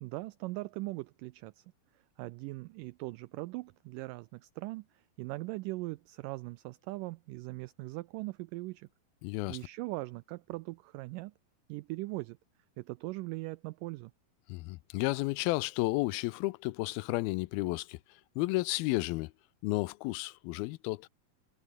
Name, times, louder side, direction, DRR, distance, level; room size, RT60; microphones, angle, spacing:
voice 1, 0.0-1.6 2.2-8.9 9.5-11.3 11.7-12.4 12.8-14.1, right 21 dB, 85° right, 1.9 m, -40 dB
voice 2, 9.2-9.6 14.5-18.0 18.4-19.3 19.6-21.1, left 21 dB, 85° left, 2.4 m, -32 dB
omnidirectional pair, 4.3 m